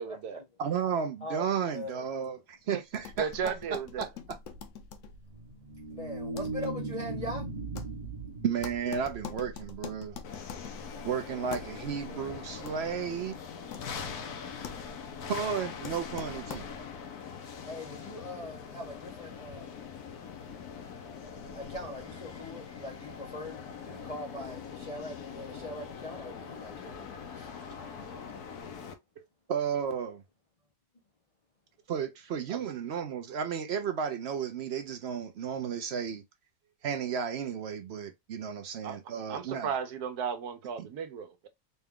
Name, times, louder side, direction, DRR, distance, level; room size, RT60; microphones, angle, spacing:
voice 1, 0.0-0.4 2.7-2.8 3.2-4.1 32.5-32.6 38.8-39.0 39.3-41.5, right 7 dB, 85° right, 1.3 m, -35 dB
voice 2, 0.6-4.4 8.4-10.2 11.0-13.3 15.3-16.6 29.5-30.2 31.9-36.2 36.8-39.8 40.8-40.9, right 7 dB, 65° right, 0.6 m, -33 dB
voice 3, 1.2-2.0 5.9-7.5 12.1-12.2 17.7-19.7 21.5-23.5 23.8-27.0 27.3-27.5, left 1 dB, 45° left, 0.5 m, -41 dB
sound 1, 2.9-17.0, left 6 dB, 65° left, 0.9 m, -46 dB
sound 2, 5.2-9.8, right 3 dB, 35° right, 0.9 m, -38 dB
sound 3, 10.2-28.9, left 6 dB, 80° left, 1.3 m, -42 dB
4.1 x 2.3 x 3.5 m
omnidirectional pair, 1.6 m